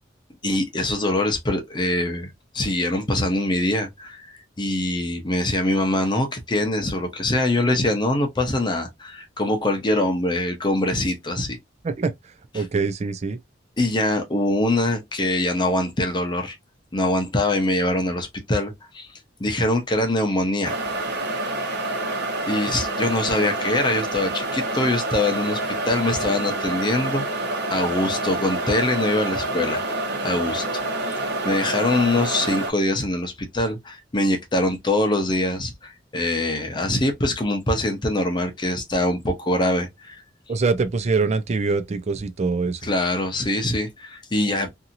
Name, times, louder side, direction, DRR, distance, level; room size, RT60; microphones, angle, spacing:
voice 1, 0.4-11.6 12.5-12.6 13.8-16.6 16.9-19.1 19.4-20.7 22.5-25.6 25.8-27.4 27.7-29.8 30.2-30.6 31.1-31.2 31.4-40.2 42.8-44.7, left 1 dB, 25° left, 0.7 m, -23 dB
voice 2, 12.5-13.4 40.5-42.8, right 4 dB, 35° right, 0.4 m, -23 dB
sound 1, 20.6-32.7, right 2 dB, 65° right, 1.1 m, -27 dB
2.7 x 2.7 x 2.5 m
head